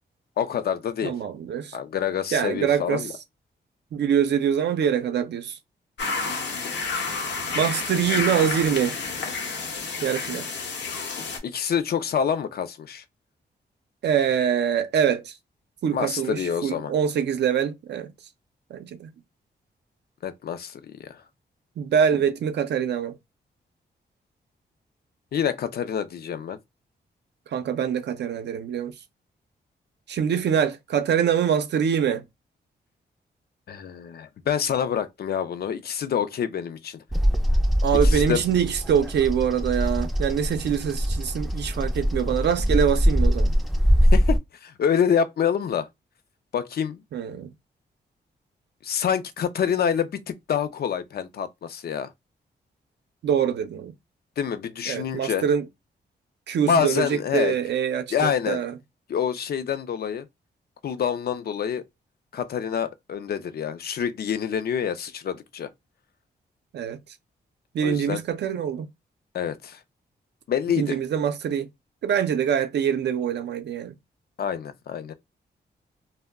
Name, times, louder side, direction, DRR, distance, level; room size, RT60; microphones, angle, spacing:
voice 1, 0.4-1.1 1.7-3.1 11.4-13.0 15.9-16.9 20.2-21.2 25.3-26.6 33.7-37.0 38.0-38.4 44.1-45.9 46.5-47.0 48.8-52.1 54.4-55.5 56.7-57.6 58.1-58.6 59.1-60.3 60.8-61.8 62.3-65.7 67.8-68.2 69.3-69.8 70.5-71.0 74.4-75.1, left 8 dB, 60° left, 0.4 m, -27 dB
voice 2, 1.0-1.8 2.3-3.1 3.9-5.6 7.5-9.0 10.0-10.5 14.0-15.3 15.8-18.1 18.7-19.1 21.8-23.2 27.5-28.9 30.1-32.2 37.8-43.5 47.1-47.5 53.2-53.9 54.9-55.7 56.5-58.7 66.7-67.0 67.7-68.9 70.8-71.7 72.0-73.9, right 8 dB, 70° right, 0.5 m, -24 dB
sound 1, 6.0-11.4, left 4 dB, 80° left, 0.8 m, -30 dB
Bird vocalization bird call bird song, 37.1-44.4, equal, ahead, 0.4 m, -22 dB
2.2 x 2.0 x 3.4 m
cardioid pair, 100°, 18 cm